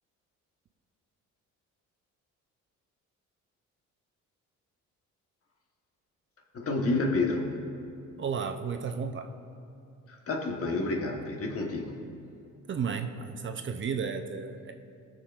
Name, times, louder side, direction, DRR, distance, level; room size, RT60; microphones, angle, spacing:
voice 1, 6.5-7.5 10.1-12.0, left 2 dB, 50° left, 2 dB, 1.3 m, -29 dB
voice 2, 8.2-9.3 12.7-14.7, right 6 dB, 40° right, 6 dB, 0.6 m, -33 dB
19.0 x 6.4 x 2.5 m, 2.7 s
cardioid pair, 90°, 30 cm